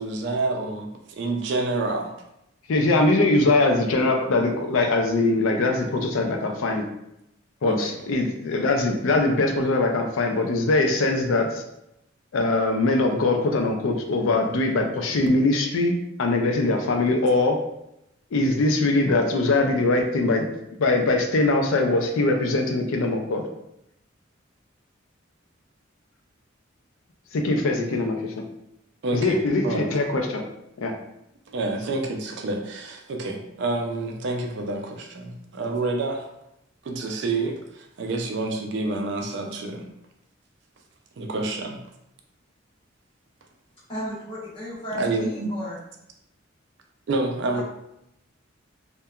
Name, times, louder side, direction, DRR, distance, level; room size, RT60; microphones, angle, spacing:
voice 1, 0.0-2.1 7.6-7.8 29.0-29.4 29.6-29.9 31.5-36.3 36.8-39.9 41.2-41.8 44.9-45.5 47.1-47.6, right 2 dB, 60° right, 3 dB, 0.4 m, -28 dB
voice 2, 2.7-6.8 7.6-11.6 12.3-17.6 18.3-20.5 20.8-23.4 27.3-28.4 29.1-30.5 30.8-30.9, left 2 dB, 85° left, 4 dB, 0.4 m, -22 dB
voice 3, 43.9-45.8 47.5-47.6, equal, 25° left, -10 dB, 1.1 m, -34 dB
2.8 x 2.2 x 2.3 m, 0.82 s
head